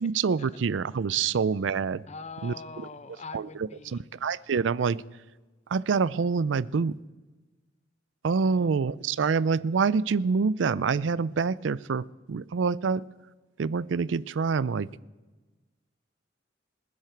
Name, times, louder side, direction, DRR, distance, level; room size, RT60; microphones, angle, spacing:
voice 1, 0.0-2.0 2.4-2.9 3.3-5.0 5.7-6.9 8.2-13.0 13.6-14.9, right 5 dB, 75° right, 20 dB, 0.4 m, -26 dB
voice 2, 2.1-4.1 8.4-8.7, left 4 dB, 35° left, 13 dB, 0.7 m, -43 dB
27.0 x 10.5 x 4.6 m, 1.2 s
head